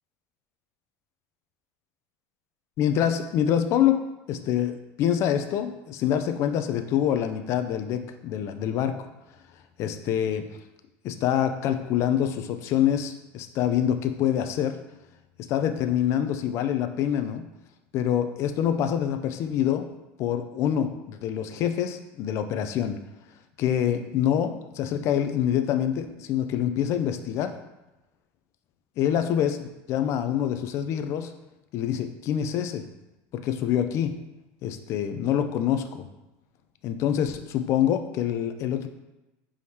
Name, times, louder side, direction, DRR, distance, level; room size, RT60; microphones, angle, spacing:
voice 1, 2.8-4.0 4.3-8.9 9.8-10.5 11.0-14.8 15.5-17.4 17.9-19.9 20.2-23.0 23.6-27.5 29.0-31.3 31.7-32.8 33.3-34.1 34.6-36.1 36.8-38.9, left 10 dB, 50° left, 8 dB, 0.4 m, -26 dB
4.7 x 3.5 x 2.8 m, 1.0 s
supercardioid pair, 135°, 6 cm